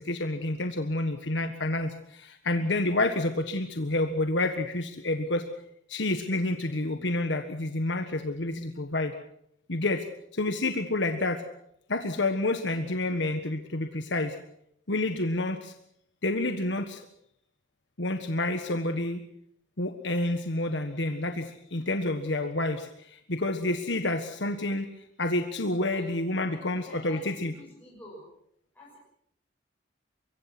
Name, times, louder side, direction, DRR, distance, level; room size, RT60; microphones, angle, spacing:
voice 1, 0.0-5.4 5.9-9.1 9.7-10.0 10.3-11.4 11.9-14.4 14.9-15.7 16.2-17.0 18.0-19.2 19.8-24.9 25.2-27.5, left 2 dB, 70° left, 7 dB, 1.5 m, -29 dB
voice 2, 26.5-28.3 28.7-29.0, left 1 dB, 10° left, -5 dB, 6.5 m, -49 dB
24.5 x 23.0 x 6.1 m, 0.72 s
head